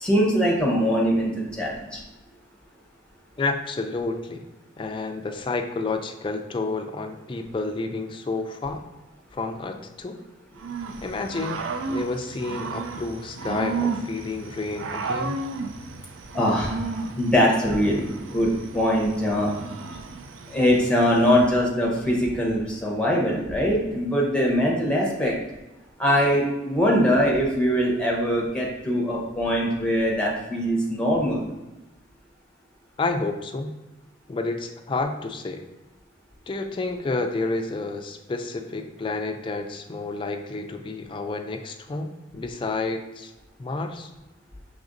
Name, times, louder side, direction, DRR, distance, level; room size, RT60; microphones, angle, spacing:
voice 1, 0.0-2.0 16.3-16.7 17.2-18.0 18.3-18.5 18.7-19.5 20.5-25.3 26.0-31.4, equal, 5° left, -3 dB, 0.8 m, -22 dB
voice 2, 3.4-4.4 4.8-8.8 9.3-10.2 11.0-11.6 11.9-15.3 33.0-33.7 34.3-35.6 36.5-43.3 43.6-44.1, left 3 dB, 25° left, 5 dB, 0.3 m, -30 dB
Growling / Cricket, 10.6-21.5, right 4 dB, 85° right, 0.4 m, -33 dB
5.0 x 3.5 x 2.5 m, 1.0 s
head